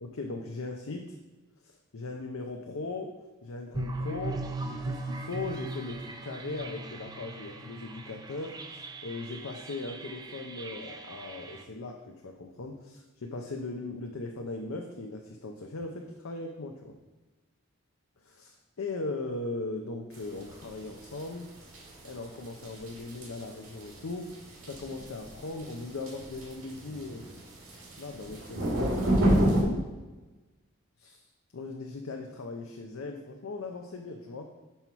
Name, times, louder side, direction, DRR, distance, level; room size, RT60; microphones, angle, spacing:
voice 1, 0.0-1.2 1.6-17.0 18.2-21.5 22.0-24.4 24.7-27.3 28.0-29.9 31.0-31.3 31.5-34.5, left 3 dB, 85° left, 3 dB, 0.6 m, -39 dB
sound 1, 3.7-11.6, right 2 dB, 20° right, 0.3 m, -39 dB
sound 2, 20.1-29.6, right 1 dB, 85° right, 2.1 m, -30 dB
5.6 x 4.5 x 5.6 m, 1.2 s
head